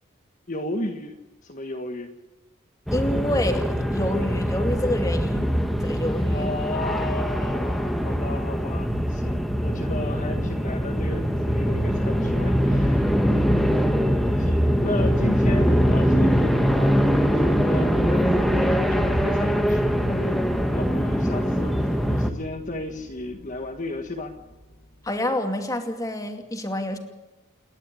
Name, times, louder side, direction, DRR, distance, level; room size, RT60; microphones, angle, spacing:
voice 1, 0.5-1.2 1.4-2.1 6.3-13.7 14.4-24.3, left 2 dB, 40° left, 3 dB, 1.6 m, -34 dB
voice 2, 2.9-5.5 5.8-6.5 13.5-13.6 25.0-27.0, left 1 dB, 15° left, 4 dB, 2.5 m, -28 dB
sound 1, 2.9-22.3, equal, ahead, 1.4 m, -22 dB
sound 2, 15.3-25.2, equal, 80° left, 4.1 m, -40 dB
28.5 x 11.5 x 10.0 m, 1.1 s
head